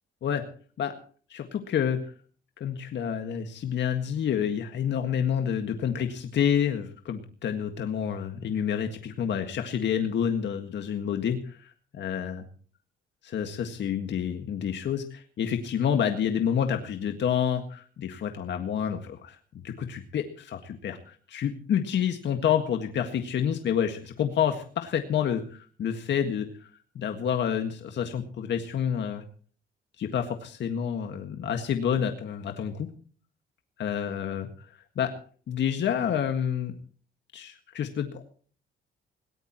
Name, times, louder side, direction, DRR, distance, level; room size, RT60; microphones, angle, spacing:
voice 1, 1.3-2.1 2.6-12.4 13.2-26.7 27.0-29.2 30.0-32.9 33.8-34.7 35.0-35.2 35.5-36.8 37.3-38.2, left 8 dB, 65° left, 6 dB, 1.8 m, -28 dB
21.0 x 18.0 x 3.0 m, 0.43 s
cardioid pair, 90°, 20 cm